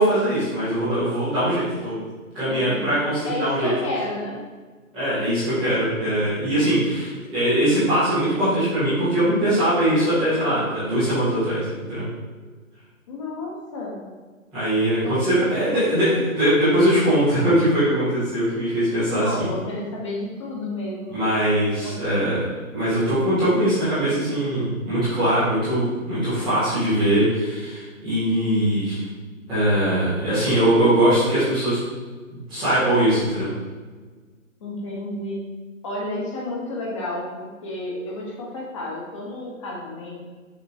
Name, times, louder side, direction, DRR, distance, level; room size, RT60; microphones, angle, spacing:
voice 1, 0.0-2.0 2.3-3.7 4.9-12.0 14.5-19.5 21.1-22.4 22.7-29.0 29.5-31.8 32.3-33.5, right 1 dB, ahead, -23 dB, 0.6 m, -21 dB
voice 2, 2.5-2.9 3.3-4.4 13.1-14.0 15.0-16.3 19.1-21.2 21.8-22.0 34.6-35.4 35.8-40.2, left 2 dB, 20° left, -3 dB, 1.1 m, -31 dB
6.7 x 3.8 x 4.1 m, 1.4 s
hypercardioid pair, 155°, 41 cm